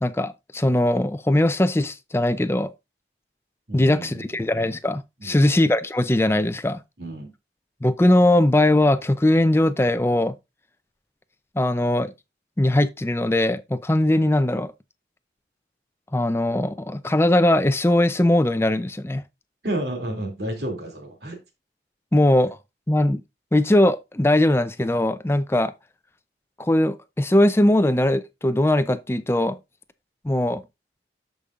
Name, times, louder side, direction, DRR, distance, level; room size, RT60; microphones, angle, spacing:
voice 1, 0.0-2.7 3.7-6.8 7.8-10.3 11.6-12.1 12.6-14.7 16.1-19.2 22.1-22.6 22.9-23.2 23.5-25.7 26.6-29.6 30.2-30.6, left 1 dB, 15° left, 0.5 m, -20 dB
voice 2, 3.7-4.4 5.2-5.5 7.0-7.3 19.6-21.4, right 1 dB, 65° right, 2.7 m, -31 dB
13.0 x 5.3 x 2.5 m
head